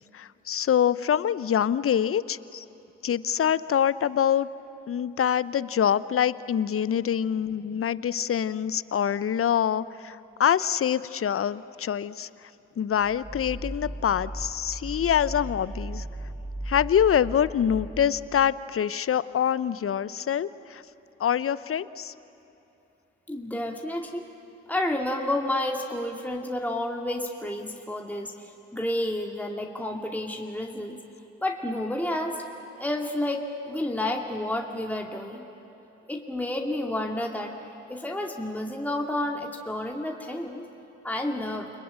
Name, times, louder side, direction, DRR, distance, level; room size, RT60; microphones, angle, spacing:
voice 1, 0.1-2.6 3.0-4.5 4.9-12.3 12.8-16.0 16.7-20.8 21.2-22.1, left 9 dB, 40° left, 18 dB, 0.8 m, -25 dB
sound 1, 13.0-18.4, right 1 dB, 30° right, 3.0 m, -37 dB
voice 2, 23.3-24.3 24.7-31.0 31.4-32.4 32.8-35.5 36.1-37.6 37.9-40.7 41.0-41.7, left 1 dB, 5° left, 1 dB, 2.5 m, -30 dB
29.5 x 21.0 x 9.0 m, 3.0 s
hypercardioid pair, 40°, 34 cm